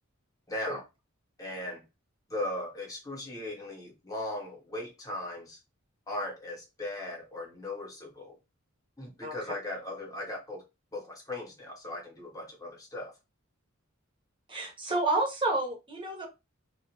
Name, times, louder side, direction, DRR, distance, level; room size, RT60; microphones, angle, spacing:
voice 1, 0.5-0.8 1.4-1.8 2.3-5.6 6.1-8.4 9.0-10.6 10.9-13.1, left 1 dB, 15° left, 0.9 m, -38 dB
voice 2, 14.5-16.3, right 2 dB, 25° right, 0.8 m, -30 dB
2.3 x 2.2 x 2.8 m
head